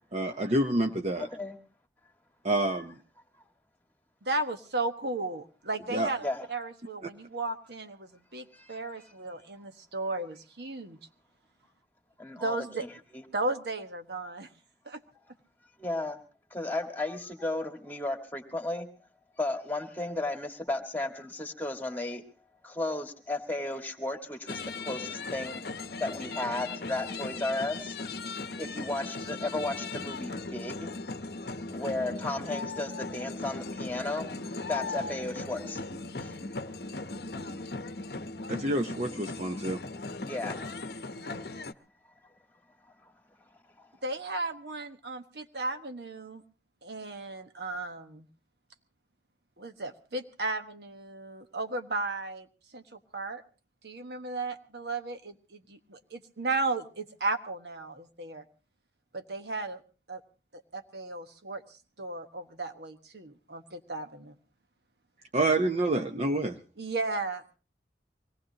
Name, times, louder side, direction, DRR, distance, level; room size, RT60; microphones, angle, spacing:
voice 1, 0.1-1.3 2.4-3.0 5.9-6.1 38.5-39.8 65.3-66.6, right 2 dB, 35° right, 5 dB, 0.8 m, -28 dB
voice 2, 1.2-1.6 6.2-6.5 8.5-8.8 12.2-12.6 15.8-16.2 16.5-18.9 19.4-22.2 22.6-25.7 26.0-28.0 28.6-30.9 31.7-35.9 36.2-36.3 40.2-40.7 43.0-43.1 43.8-43.9, left 2 dB, 10° left, 5 dB, 1.8 m, -34 dB
voice 3, 4.2-11.0 12.4-12.9 13.3-14.5 14.8-15.0 44.0-46.4 46.8-48.3 49.6-53.4 53.8-58.4 59.1-59.8 60.1-60.2 60.5-64.4 66.8-67.4, right 2 dB, 65° right, 7 dB, 1.3 m, -35 dB
sound 1, 24.5-41.7, left 3 dB, 60° left, 0.8 m, -38 dB
24.0 x 18.5 x 2.8 m, 0.35 s
head